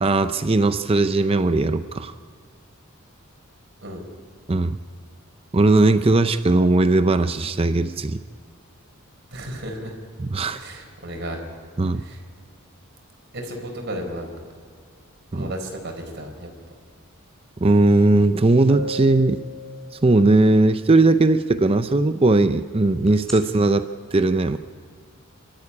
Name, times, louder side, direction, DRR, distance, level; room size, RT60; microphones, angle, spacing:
voice 1, 0.0-2.1 4.5-4.8 5.5-8.2 10.2-10.6 11.8-12.0 15.3-15.5 17.6-19.4 20.0-24.6, right 2 dB, 25° right, 11 dB, 0.5 m, -18 dB
voice 2, 9.3-9.9 10.5-11.4 11.9-12.2 13.3-14.3 15.3-16.5, right 1 dB, 55° right, 2 dB, 4.6 m, -33 dB
sound 1, 18.2-18.3 18.7-20.4 23.1-23.3, right 1 dB, ahead, 4.7 m, -34 dB
26.5 x 13.0 x 9.8 m, 2.1 s
head